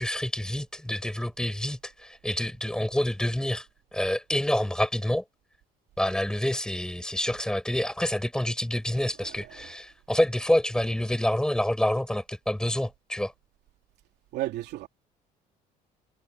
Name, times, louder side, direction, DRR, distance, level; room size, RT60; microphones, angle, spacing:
voice 1, 0.0-3.7 3.9-5.2 6.0-13.3, left 1 dB, 5° left, 6.3 m, -27 dB
voice 2, 9.2-9.7 14.3-14.9, right 15 dB, 85° right, 3.1 m, -34 dB
cardioid pair, 110°, 17 cm